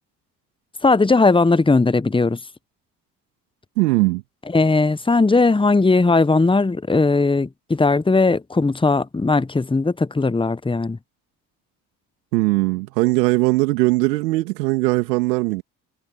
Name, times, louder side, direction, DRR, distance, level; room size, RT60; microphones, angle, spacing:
voice 1, 0.8-2.4 4.5-11.0, left 3 dB, 10° left, 1.0 m, -18 dB
voice 2, 3.8-4.2 12.3-15.6, right 22 dB, 80° right, 2.6 m, -19 dB
hypercardioid pair, 50°, 48 cm